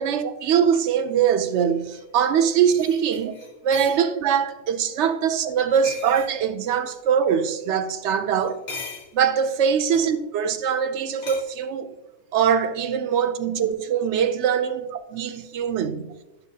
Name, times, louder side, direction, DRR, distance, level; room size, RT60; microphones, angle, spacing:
voice 1, 0.0-3.3 3.6-8.6 9.1-11.9 12.3-14.9 15.1-16.1, right 7 dB, 70° right, 0.8 m, -22 dB
sound 1, 1.9-2.0 2.7-4.0 5.7-6.3 8.4-9.2 9.9-10.1 11.2-11.4, left 4 dB, 65° left, 1.5 m, -38 dB
9.1 x 6.2 x 2.7 m
omnidirectional pair, 1.3 m